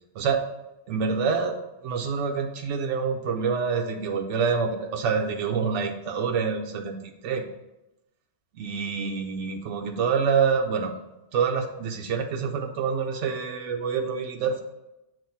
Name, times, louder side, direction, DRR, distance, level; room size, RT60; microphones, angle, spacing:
voice 1, 0.9-1.6 1.8-7.0 7.2-7.4 8.6-10.9 11.3-14.6, right 6 dB, 90° right, 3 dB, 0.9 m, -26 dB
7.3 x 2.6 x 5.5 m, 0.94 s
omnidirectional pair, 1.2 m